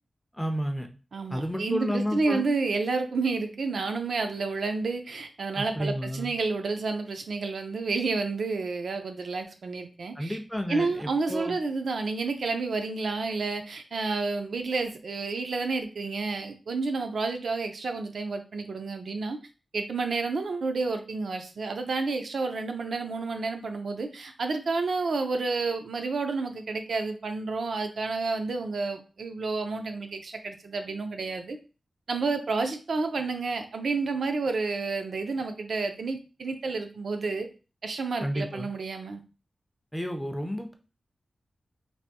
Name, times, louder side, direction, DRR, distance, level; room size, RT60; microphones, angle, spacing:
voice 1, 0.4-0.9 1.3-2.4 5.6-6.3 10.2-11.6 38.2-38.7 39.9-40.8, equal, 5° left, 5 dB, 0.3 m, -31 dB
voice 2, 1.1-10.4 10.7-19.4 19.7-31.6 32.1-37.5 37.8-39.2, right 3 dB, 75° right, 6 dB, 0.5 m, -30 dB
3.3 x 2.5 x 2.7 m, 0.34 s
wide cardioid pair, 130°, 0 cm